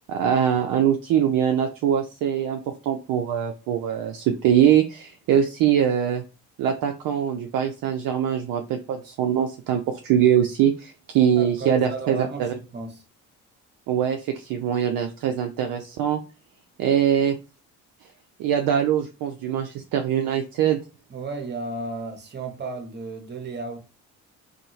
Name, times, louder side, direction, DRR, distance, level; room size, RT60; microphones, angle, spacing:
voice 1, 0.1-6.2 6.6-12.5 13.9-16.2 16.8-17.4 18.4-20.8, right 9 dB, 45° right, 0.5 m, -22 dB
voice 2, 11.4-13.0 21.1-23.8, right 3 dB, 25° right, 0.8 m, -33 dB
2.7 x 2.4 x 2.7 m
figure-of-eight pair, 40°, 47 cm